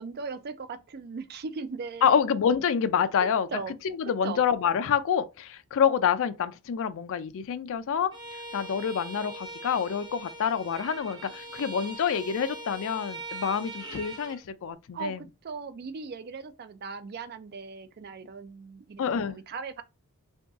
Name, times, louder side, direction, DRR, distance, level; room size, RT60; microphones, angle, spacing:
voice 1, 0.0-2.2 3.2-3.7 4.2-4.4 14.9-19.8, right 5 dB, 45° right, 0.4 m, -38 dB
voice 2, 2.0-3.5 3.8-8.2 8.5-15.2 19.0-19.4, left 7 dB, 60° left, 0.4 m, -27 dB
Bowed string instrument, 8.1-14.4, right 1 dB, 20° right, 0.8 m, -41 dB
2.9 x 2.7 x 3.5 m
head